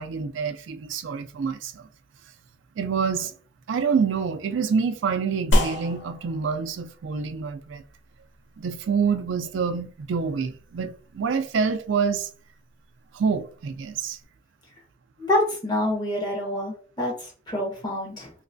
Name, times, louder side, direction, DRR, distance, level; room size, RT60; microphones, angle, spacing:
voice 1, 0.0-1.9 2.8-3.3 3.7-7.8 8.6-12.3 13.1-14.2, right 5 dB, 80° right, 0.4 m, -27 dB
sound 1, 5.5-14.2, equal, 65° left, 0.7 m, -32 dB
voice 2, 15.2-18.3, left 1 dB, 25° left, 1.2 m, -27 dB
3.2 x 3.0 x 2.6 m
head